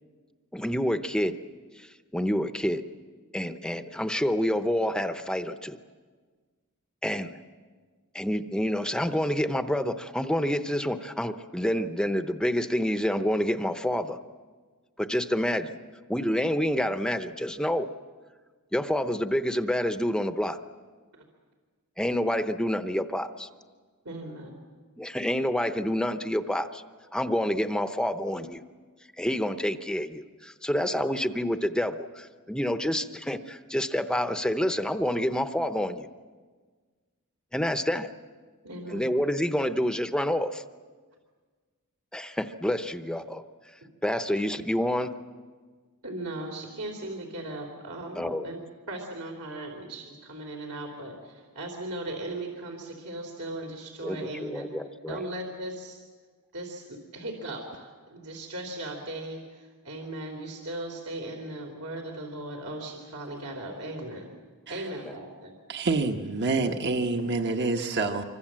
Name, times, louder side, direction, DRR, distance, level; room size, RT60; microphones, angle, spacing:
voice 1, 0.5-1.4 1.8-2.8 3.3-5.8 7.0-7.4 8.1-14.2 15.0-15.8 16.1-17.9 18.7-20.6 22.0-23.5 25.0-26.8 27.1-28.6 29.2-36.1 37.5-38.1 38.9-40.6 42.1-45.1 48.2-48.5 54.0-55.2 65.0-65.1, equal, 5° left, 9 dB, 0.7 m, -28 dB
voice 2, 24.1-24.6 30.9-31.0 38.6-39.1 46.0-48.6 48.9-54.7 55.1-56.0 56.5-64.3 64.7-65.5 67.2-67.3, right 1 dB, 75° right, 2 dB, 3.3 m, -38 dB
voice 3, 65.7-68.2, right 3 dB, 50° right, 4 dB, 1.3 m, -27 dB
26.0 x 24.5 x 7.5 m, 1.5 s
head